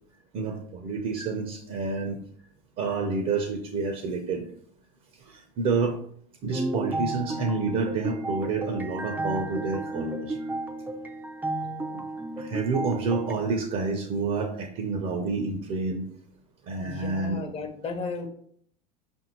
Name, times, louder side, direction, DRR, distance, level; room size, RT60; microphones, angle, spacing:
voice 1, 0.3-2.2 2.8-4.5 5.3-6.0 6.4-10.4 12.4-16.0 16.7-17.4, right 4 dB, 50° right, 4 dB, 0.6 m, -29 dB
sound 1, 6.5-13.3, right 2 dB, 10° right, 0.4 m, -33 dB
voice 2, 16.8-18.3, left 4 dB, 35° left, 5 dB, 0.8 m, -34 dB
5.1 x 2.6 x 2.9 m, 0.62 s
hypercardioid pair, 90°, 18 cm